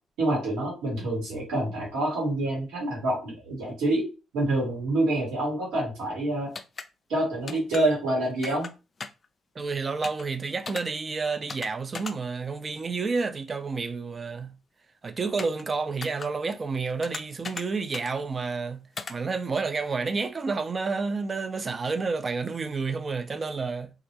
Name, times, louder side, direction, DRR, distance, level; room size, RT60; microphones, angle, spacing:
voice 1, 0.2-4.1 4.3-6.5 7.1-8.7, right 1 dB, 80° right, 1.3 m, -27 dB
sound 1, 6.5-6.9 7.5-7.8 8.4-8.7 9.0-9.3 10.0-10.2 10.7-10.8 11.5-11.7 11.9-12.1 15.4-15.6 16.0-16.3 17.0-17.6 17.9-18.1 19.0-19.1, left 4 dB, 45° left, 0.3 m, -37 dB
voice 2, 9.6-14.5 15.0-18.8 19.1-23.9, right 4 dB, 40° right, 0.4 m, -30 dB
2.4 x 2.1 x 2.8 m
supercardioid pair, 55°, 0 cm